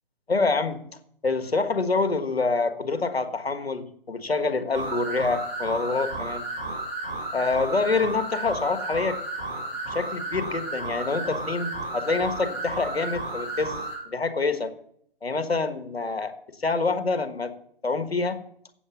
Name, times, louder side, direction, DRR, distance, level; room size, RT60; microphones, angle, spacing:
voice 1, 0.3-0.8 1.2-6.4 7.3-9.2 9.9-13.8 14.1-14.7 15.2-17.5 17.8-18.4, left 3 dB, 90° left, 10 dB, 1.5 m, -26 dB
sound 1, 4.7-14.0, right 2 dB, 15° right, 4.7 m, -33 dB
8.2 x 7.5 x 7.1 m, 0.66 s
figure-of-eight pair, 145°, 30 cm